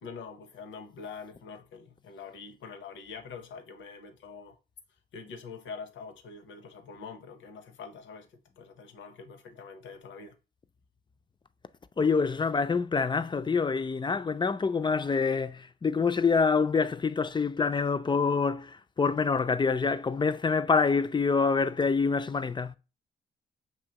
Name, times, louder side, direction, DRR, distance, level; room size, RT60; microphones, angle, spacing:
voice 1, 0.0-4.6 5.1-10.4, left 5 dB, 80° left, 0.8 m, -45 dB
voice 2, 12.0-22.8, left 5 dB, 25° left, 0.4 m, -26 dB
5.9 x 2.9 x 2.8 m
cardioid pair, 70°, 20 cm